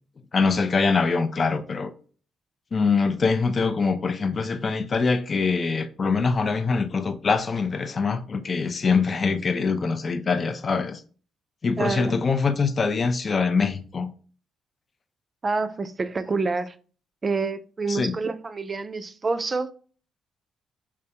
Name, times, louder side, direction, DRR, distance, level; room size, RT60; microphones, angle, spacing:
voice 1, 0.3-1.9 2.7-11.0 11.6-14.1 17.9-18.2, left 4 dB, 40° left, 0.4 m, -24 dB
voice 2, 11.8-12.2 15.4-16.7 17.2-19.7, right 4 dB, 30° right, 0.3 m, -27 dB
3.4 x 3.3 x 2.8 m
cardioid pair, 90°, 0 cm